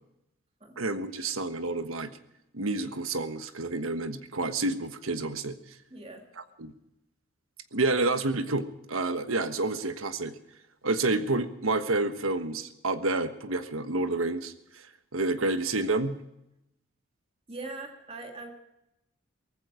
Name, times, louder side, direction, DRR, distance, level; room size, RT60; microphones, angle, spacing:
voice 1, 0.8-2.1 2.5-5.5 6.6-6.7 7.7-10.3 10.8-14.9 15.1-16.2, right 2 dB, 80° right, 10 dB, 1.3 m, -29 dB
voice 2, 5.9-6.3 17.5-18.5, right 3 dB, 30° right, 3 dB, 2.4 m, -41 dB
18.5 x 15.0 x 5.0 m, 0.87 s
head